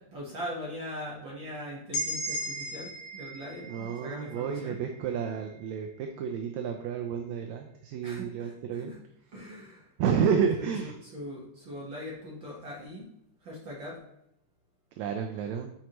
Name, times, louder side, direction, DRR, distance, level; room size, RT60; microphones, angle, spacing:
voice 1, 0.0-4.8 8.0-9.0 9.3-9.9 10.3-13.1 13.4-14.0, equal, 50° right, -5 dB, 1.6 m, -41 dB
sound 1, 1.9-5.7, equal, 60° left, 1.7 m, -37 dB
voice 2, 3.6-8.9 10.0-10.9 15.0-15.7, right 7 dB, 80° right, 5 dB, 1.7 m, -30 dB
9.4 x 4.6 x 3.0 m, 0.78 s
omnidirectional pair, 3.6 m